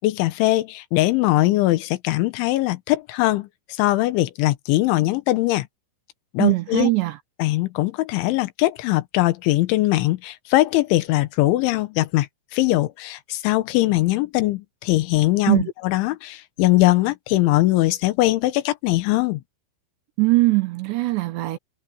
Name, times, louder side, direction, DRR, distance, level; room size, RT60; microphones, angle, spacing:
voice 1, 0.0-5.7 6.3-6.9 7.4-19.4, left 18 dB, 80° left, 3.5 m, -21 dB
voice 2, 6.4-7.2 15.5-15.7 20.2-21.6, right 22 dB, 75° right, 3.2 m, -20 dB
omnidirectional pair, 5.4 m